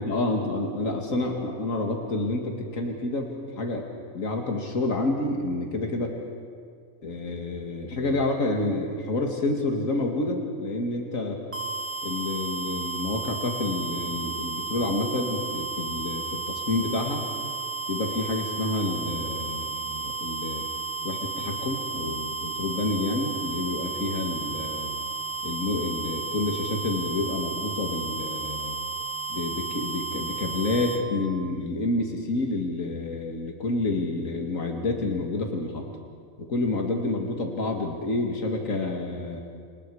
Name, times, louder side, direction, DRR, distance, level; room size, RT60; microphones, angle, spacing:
voice 1, 0.0-3.3 3.6-3.9 4.1-6.2 7.0-11.4 12.0-17.3 17.9-20.6 21.0-24.9 25.4-28.8 29.3-35.8 36.4-39.4, left 2 dB, 80° left, 2 dB, 2.6 m, -29 dB
sound 1, 11.5-31.0, right 4 dB, 10° right, 1.9 m, -33 dB
30.0 x 28.0 x 4.9 m, 2.1 s
omnidirectional pair, 1.4 m